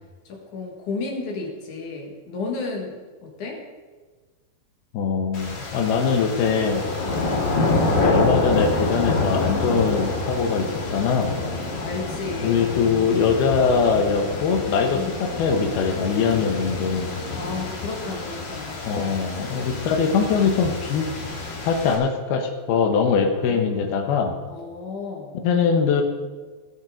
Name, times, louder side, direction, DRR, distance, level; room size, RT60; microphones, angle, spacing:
voice 1, 0.3-3.6 11.5-13.0 14.9-15.1 17.3-19.2 23.3-23.8 24.5-25.3, left 3 dB, 60° left, 0 dB, 2.9 m, -33 dB
voice 2, 4.9-6.8 8.0-11.3 12.4-17.1 18.8-21.1 21.7-24.3 25.4-26.0, left 5 dB, 80° left, 5 dB, 3.1 m, -22 dB
sound 1, 5.3-22.0, left 2 dB, 40° left, 1.7 m, -27 dB
19.5 x 6.9 x 5.1 m, 1.4 s
omnidirectional pair, 4.4 m